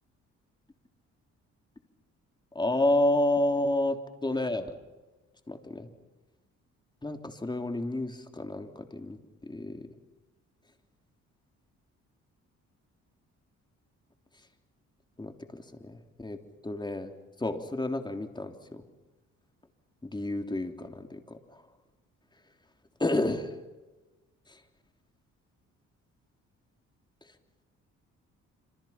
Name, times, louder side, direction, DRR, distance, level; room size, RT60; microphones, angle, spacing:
voice 1, 2.5-4.7 5.5-5.9 7.0-9.9 15.2-16.4 16.6-17.1 17.4-18.8 20.0-21.6 23.0-23.5 24.5-24.6, left 1 dB, 15° left, 5 dB, 3.3 m, -30 dB
27.5 x 27.0 x 5.9 m, 1.1 s
cardioid pair, 90°, 30 cm